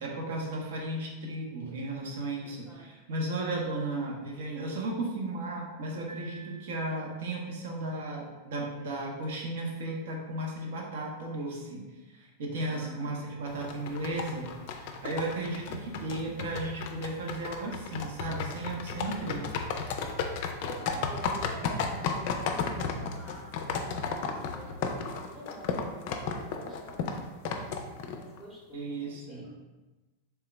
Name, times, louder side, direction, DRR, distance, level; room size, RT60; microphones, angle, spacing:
voice 1, 0.0-11.8 12.1-19.6 28.7-29.5, right 2 dB, 55° right, -1 dB, 0.9 m, -35 dB
voice 2, 2.4-2.9 12.6-13.4 20.5-24.9 25.3-29.5, right 1 dB, 15° right, -3 dB, 0.9 m, -47 dB
Piano, 6.1-7.4, right 3 dB, 85° right, 0.9 m, -51 dB
sound 1, 13.5-28.4, left 5 dB, 45° left, 0.4 m, -34 dB
3.8 x 3.5 x 3.3 m, 1.1 s
figure-of-eight pair, 90°, 0 cm